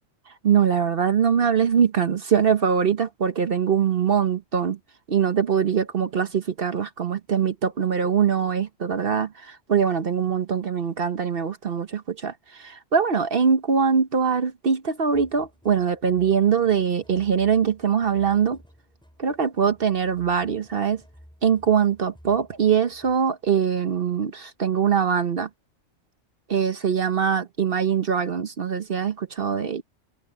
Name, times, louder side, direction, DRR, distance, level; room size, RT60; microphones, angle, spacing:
voice 1, 0.4-4.8 5.1-18.6 19.2-21.0 21.4-25.5 26.5-29.8, right 7 dB, 50° right, 1.0 m, -22 dB
sound 1, 15.1-23.2, equal, 5° left, 5.9 m, -53 dB
omnidirectional pair, 1.3 m